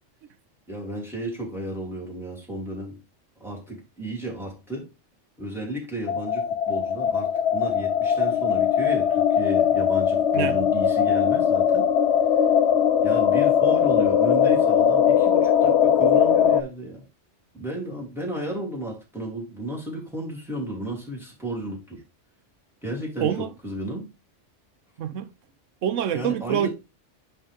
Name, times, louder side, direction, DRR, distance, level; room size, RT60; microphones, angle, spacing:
voice 1, 0.7-3.0 3.4-4.9 5.4-11.9 13.0-17.0 17.5-22.0 22.8-24.1 26.1-26.7, right 1 dB, ahead, 3.0 m, -33 dB
sound 1, 6.1-16.6, left 8 dB, 65° left, 1.0 m, -20 dB
voice 2, 23.2-23.5 25.0-25.3 25.8-26.7, right 9 dB, 85° right, 1.1 m, -25 dB
10.0 x 3.6 x 3.5 m
omnidirectional pair, 1.2 m